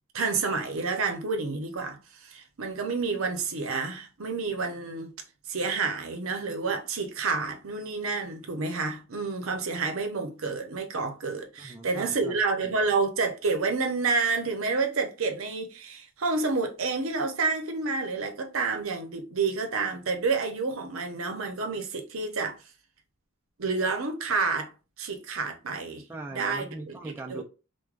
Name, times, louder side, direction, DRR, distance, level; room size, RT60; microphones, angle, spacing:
voice 1, 0.1-5.1 5.5-22.6 23.6-24.7 25.0-26.0 26.3-26.7 27.3-27.4, right 4 dB, 70° right, 0.7 m, -29 dB
voice 2, 11.6-12.4 12.6-12.8 26.1-27.4, right 2 dB, 10° right, 0.3 m, -40 dB
4.6 x 2.2 x 2.4 m
head